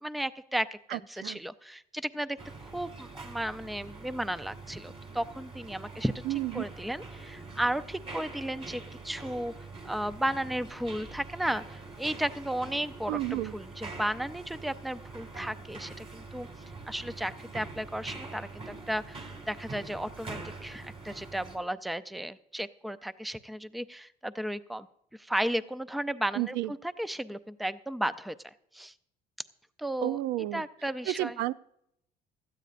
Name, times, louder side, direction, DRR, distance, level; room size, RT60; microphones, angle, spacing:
voice 1, 0.0-2.4 2.7-6.2 6.5-9.5 9.8-16.5 16.9-24.9 25.2-28.9 29.8-30.2 30.5-31.4, right 1 dB, ahead, 14 dB, 0.4 m, -34 dB
voice 2, 0.9-1.4 6.2-6.6 13.1-13.5 26.3-26.7 30.0-30.6 31.1-31.5, right 15 dB, 90° right, 16 dB, 0.4 m, -31 dB
sound 1, 2.4-21.6, right 3 dB, 35° right, 2.3 m, -44 dB
17.5 x 13.0 x 2.5 m, 0.77 s
cardioid pair, 110°, 17 cm